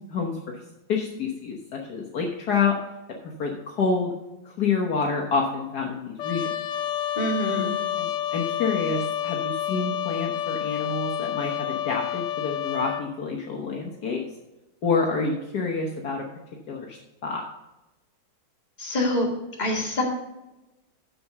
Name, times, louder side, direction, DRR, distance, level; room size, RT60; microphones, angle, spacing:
voice 1, 0.1-0.6 0.9-2.8 3.2-4.1 4.4-6.5 8.0-14.2 14.8-16.3 16.7-17.4, left 4 dB, 60° left, 0 dB, 1.6 m, -28 dB
Trumpet, 6.2-13.1, left 11 dB, 80° left, 0.6 m, -29 dB
voice 2, 7.2-7.7 18.8-19.3 19.6-20.0, left 1 dB, 25° left, -2 dB, 2.2 m, -25 dB
7.7 x 6.7 x 6.4 m, 0.98 s
omnidirectional pair, 2.0 m